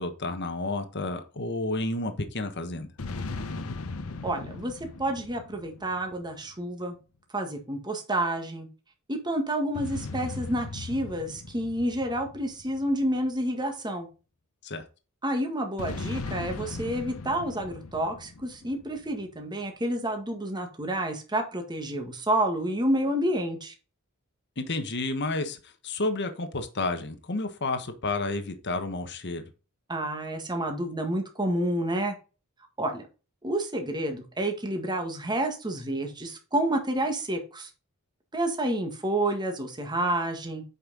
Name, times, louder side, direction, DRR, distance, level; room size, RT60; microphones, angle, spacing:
voice 1, 0.0-2.9 14.6-14.8 24.6-25.6 25.8-29.4, left 2 dB, 55° left, 1.3 m, -31 dB
sound 1, 3.0-6.6 9.7-13.4 15.8-19.2, left 3 dB, 75° left, 1.0 m, -38 dB
voice 2, 4.2-4.7 5.0-7.0 7.3-8.7 9.1-14.1 15.2-23.7 29.9-32.1 32.8-33.0 33.4-37.7 38.3-40.6, right 1 dB, 20° right, 1.7 m, -29 dB
8.3 x 5.5 x 4.0 m
head